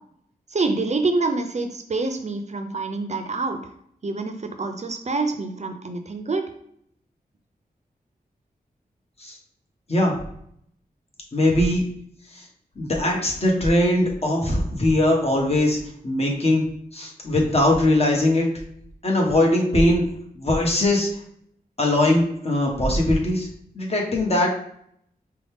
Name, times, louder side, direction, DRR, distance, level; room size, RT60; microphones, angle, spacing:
voice 1, 0.5-3.7 4.0-6.5, right 3 dB, 45° right, 6 dB, 0.5 m, -26 dB
voice 2, 11.3-11.8 12.3-12.4 12.8-16.7 16.9-18.5 19.0-20.0 20.4-21.1 21.8-23.5 23.7-24.5, left 1 dB, 40° left, -1 dB, 1.3 m, -20 dB
5.0 x 2.2 x 3.5 m, 0.69 s
wide cardioid pair, 75°, 16 cm